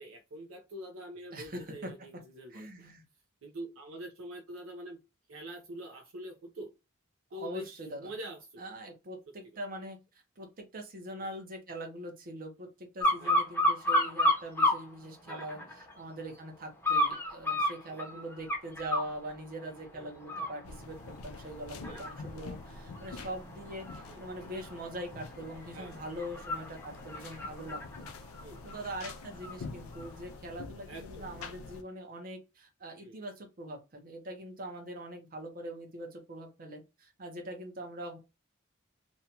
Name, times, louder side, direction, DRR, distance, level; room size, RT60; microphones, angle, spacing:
voice 1, 0.0-2.7 3.4-5.0 5.3-6.7 7.3-7.7 8.0-8.6 11.2-11.3 13.2-13.4 15.3-15.5 17.9-18.0 19.9-20.1 21.8-22.1 24.1-24.2 25.7-26.0 28.4-28.6 30.9-31.4 33.0-33.3, equal, 70° right, 0.5 m, -45 dB
voice 2, 1.3-1.9 2.5-3.0 7.3-8.1 8.6-10.0 10.4-28.1 28.6-38.2, right 1 dB, 45° right, 0.8 m, -42 dB
sound 1, 13.0-14.8 15.3-15.9 16.8-19.1 19.6-19.9 20.2-29.5 29.9-30.1, left 1 dB, 10° left, 0.7 m, -32 dB
sound 2, 20.6-31.8, left 4 dB, 90° left, 0.4 m, -47 dB
2.7 x 2.2 x 2.7 m
head